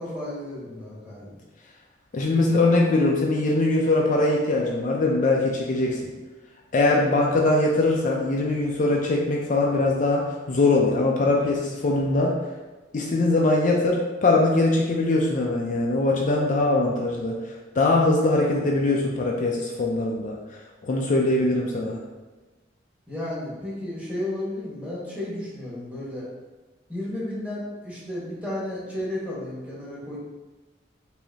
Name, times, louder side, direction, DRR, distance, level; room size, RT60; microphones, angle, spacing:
voice 1, 0.0-1.3 23.1-26.3 26.9-30.2, left 1 dB, 5° right, -8 dB, 1.3 m, -33 dB
voice 2, 2.1-6.1 6.7-12.3 12.9-22.0, left 2 dB, 45° left, -1 dB, 0.4 m, -22 dB
4.9 x 2.7 x 2.8 m, 1.2 s
head